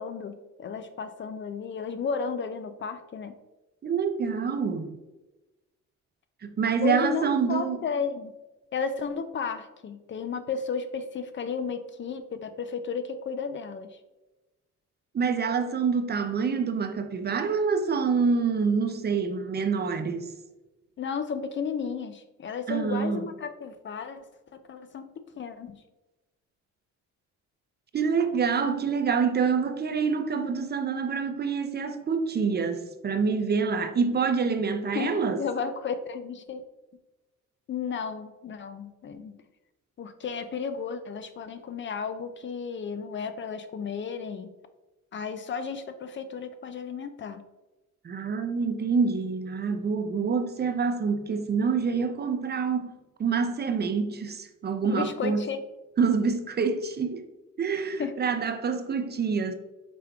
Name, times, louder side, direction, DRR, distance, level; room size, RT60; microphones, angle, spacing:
voice 1, 0.0-3.3 6.8-8.3 8.7-14.0 21.0-24.2 24.7-25.1 25.3-25.8 34.9-36.6 37.7-39.4 40.0-44.5 45.1-47.4 54.9-55.6 58.0-58.1, left 5 dB, 40° left, 0.4 m, -33 dB
voice 2, 3.8-5.0 6.4-7.8 15.1-20.3 22.7-23.3 27.9-35.4 48.0-52.9 53.2-55.5 56.0-57.2 57.6-59.5, right 5 dB, 35° right, 0.5 m, -26 dB
5.1 x 4.4 x 2.3 m
cardioid pair, 90°, 30 cm